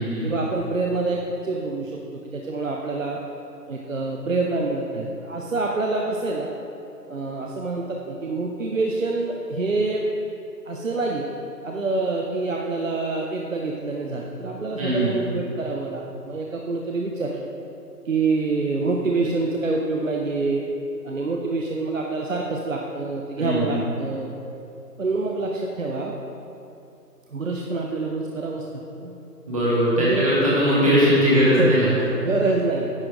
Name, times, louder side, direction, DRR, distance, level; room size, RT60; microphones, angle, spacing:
voice 1, 0.2-2.0 2.2-3.2 3.7-6.5 7.1-10.1 10.7-11.3 11.6-17.5 18.1-20.6 21.0-24.3 25.0-26.2 27.3-29.1 30.0-30.3 31.4-32.9, right 3 dB, 55° right, 0 dB, 0.6 m, -26 dB
voice 2, 14.8-15.2 23.4-23.8 29.5-31.9, equal, 20° right, -8 dB, 1.6 m, -20 dB
9.7 x 4.3 x 4.9 m, 2.7 s
figure-of-eight pair, 165°, 49 cm